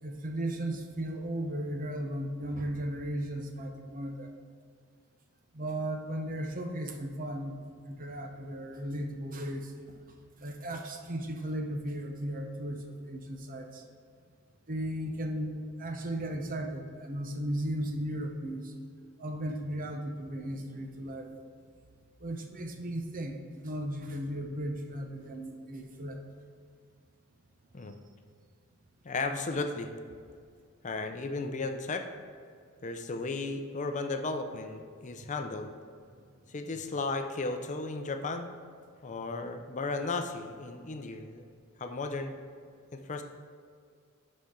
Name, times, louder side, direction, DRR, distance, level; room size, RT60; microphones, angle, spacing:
voice 1, 0.0-4.3 5.5-7.6 7.9-9.7 10.4-13.8 14.7-18.7 19.2-21.3 22.2-23.4 23.6-26.2, right 1 dB, 40° right, 3 dB, 0.8 m, -36 dB
voice 2, 29.0-29.9 30.8-32.1 32.8-35.7 36.5-38.5 39.0-41.5 41.8-42.3 42.9-43.2, left 3 dB, 35° left, 6 dB, 0.5 m, -35 dB
11.5 x 4.3 x 3.7 m, 2.2 s
head